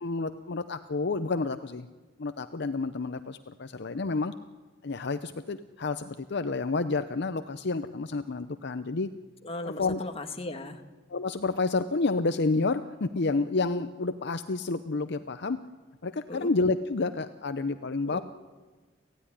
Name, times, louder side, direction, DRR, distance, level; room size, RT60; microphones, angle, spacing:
voice 1, 0.0-1.9 2.2-4.3 4.8-9.1 9.6-10.0 11.1-15.6 16.0-18.2, left 3 dB, 60° left, 10 dB, 0.7 m, -29 dB
voice 2, 9.4-10.8 16.3-16.5 18.1-18.2, left 2 dB, 30° left, 5 dB, 1.7 m, -37 dB
28.0 x 15.5 x 10.0 m, 1.4 s
head